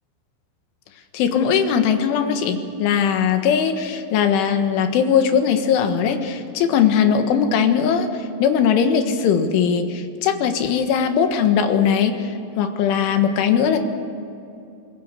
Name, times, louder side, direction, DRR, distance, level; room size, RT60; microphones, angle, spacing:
voice 1, 1.1-13.8, left 7 dB, 75° left, 6 dB, 3.9 m, -19 dB
26.5 x 21.0 x 6.7 m, 2.6 s
omnidirectional pair, 5.8 m